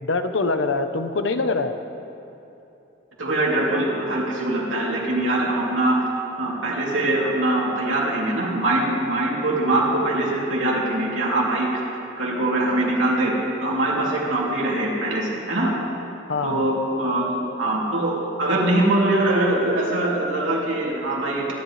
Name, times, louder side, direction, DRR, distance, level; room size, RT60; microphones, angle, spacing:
voice 1, 0.0-1.7 16.3-16.6, left 3 dB, 70° left, 9 dB, 0.8 m, -24 dB
voice 2, 3.2-6.0 6.4-11.8 12.2-13.3 13.6-15.7 16.4-21.5, right 1 dB, 80° right, -4 dB, 2.9 m, -22 dB
24.5 x 10.5 x 3.2 m, 2.9 s
head